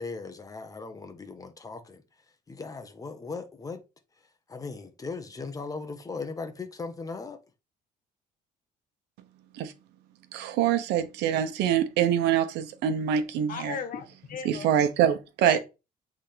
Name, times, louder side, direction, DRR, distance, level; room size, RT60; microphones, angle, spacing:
voice 1, 0.0-2.0 2.5-3.8 4.5-7.4, left 4 dB, 20° left, 1.2 m, -38 dB
voice 2, 10.3-13.8 14.4-15.6, right 9 dB, 85° right, 1.1 m, -25 dB
voice 3, 13.5-14.7 15.5-15.6, left 6 dB, 55° left, 1.4 m, -36 dB
8.2 x 3.7 x 3.4 m
cardioid pair, 110°, 17 cm